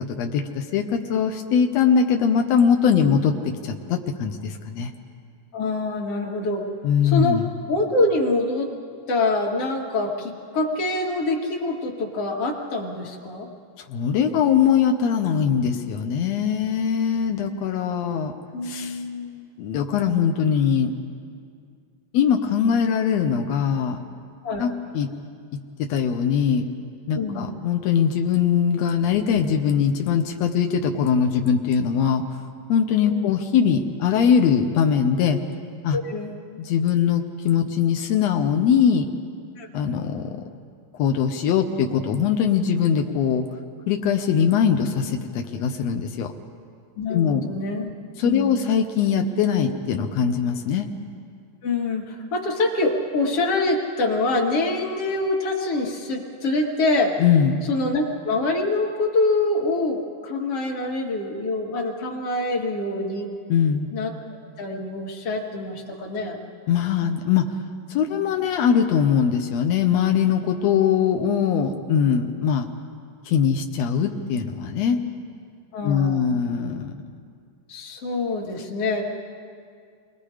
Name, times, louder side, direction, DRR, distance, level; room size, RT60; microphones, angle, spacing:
voice 1, 0.2-0.8 1.1-4.9 6.8-7.5 13.8-18.3 18.6-19.0 19.6-20.9 22.1-24.0 24.6-25.1 25.9-26.6 27.1-32.4 32.7-35.4 35.8-36.0 36.6-39.1 39.7-40.4 40.9-43.4 43.9-46.3 47.1-47.4 48.2-50.9 57.2-57.6 63.5-63.9 66.7-67.4 67.9-72.7 73.2-75.0 75.8-77.0, left 7 dB, 85° left, 3 dB, 1.5 m, -21 dB
voice 2, 5.5-6.6 7.0-7.4 7.7-8.7 9.1-13.5 18.5-19.5 24.4-24.7 27.1-27.5 33.0-33.3 35.9-36.4 39.6-39.7 47.0-47.9 48.2-48.6 51.6-57.1 57.7-63.3 63.9-64.1 64.6-66.4 75.7-76.4 77.7-79.0, left 2 dB, 45° left, 0 dB, 2.4 m, -25 dB
28.5 x 21.5 x 5.0 m, 2.2 s
omnidirectional pair, 4.2 m